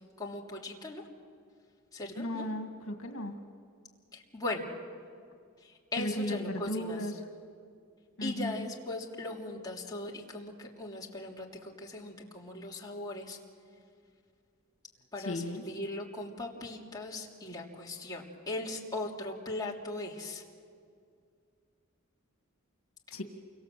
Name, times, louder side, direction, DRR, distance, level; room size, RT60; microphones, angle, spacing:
voice 1, 0.2-1.0 1.9-2.5 4.1-4.6 5.6-7.0 8.2-13.4 15.1-20.4, left 2 dB, 20° left, -3 dB, 3.2 m, -39 dB
voice 2, 2.2-3.4 6.0-7.2 8.2-8.7 15.2-15.6 23.1-23.2, left 1 dB, 70° left, 4 dB, 2.2 m, -35 dB
29.0 x 25.0 x 7.7 m, 2.2 s
head